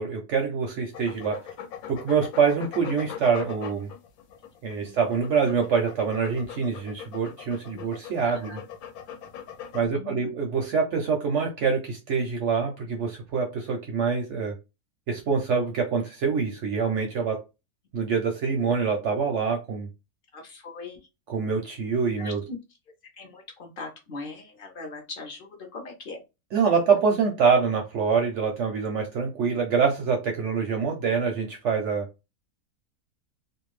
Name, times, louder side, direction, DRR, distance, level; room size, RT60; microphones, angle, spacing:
voice 1, 0.0-1.5 1.9-3.9 4.6-8.6 9.7-14.5 15.1-17.4 17.9-19.9 21.3-22.4 26.5-32.1, right 5 dB, 65° right, 0.7 m, -25 dB
sound 1, 0.9-9.9, left 8 dB, 75° left, 1.0 m, -40 dB
voice 2, 4.7-5.0 7.7-7.8 8.2-8.6 9.8-10.3 20.3-21.0 22.2-22.6 23.1-26.2, left 3 dB, 50° left, 0.7 m, -40 dB
2.6 x 2.2 x 3.1 m
omnidirectional pair, 1.6 m